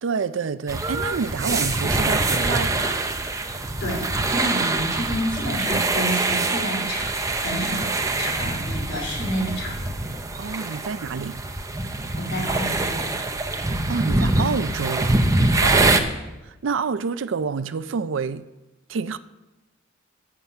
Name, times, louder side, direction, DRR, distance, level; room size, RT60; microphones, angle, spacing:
voice 1, 0.0-3.0 10.4-11.4 13.6-15.2 15.6-16.1 16.4-18.5 18.9-19.2, right 5 dB, 70° right, 0.4 m, -28 dB
sound 1, 0.7-16.0, right 2 dB, 15° right, 0.7 m, -24 dB
voice 2, 3.8-9.8 12.1-13.1 15.7-16.0, equal, 65° left, 3.4 m, -29 dB
13.0 x 7.6 x 5.5 m
head